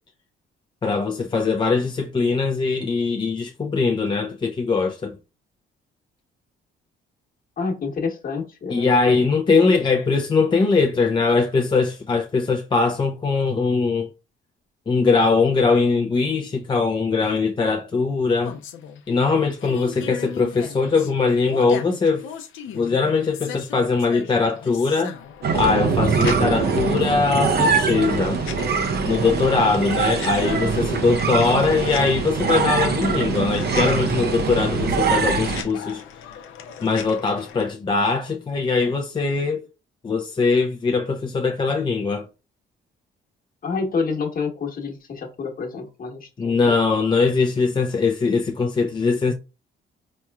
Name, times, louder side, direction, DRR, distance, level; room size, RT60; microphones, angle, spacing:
voice 1, 0.8-5.2 8.7-14.1 14.9-18.6 19.1-22.3 22.7-25.2 25.5-28.4 29.0-36.0 36.8-39.6 40.0-42.3 46.4-49.3, left 4 dB, 25° left, 0.4 m, -21 dB
voice 2, 7.6-9.3 9.7-9.8 43.6-46.7, left 4 dB, 45° left, 1.1 m, -28 dB
sound 1, 18.4-37.7, left 8 dB, 80° left, 0.6 m, -38 dB
sound 2, 25.4-35.6, right 5 dB, 55° right, 0.7 m, -23 dB
4.2 x 3.0 x 2.3 m
cardioid pair, 90°, 20 cm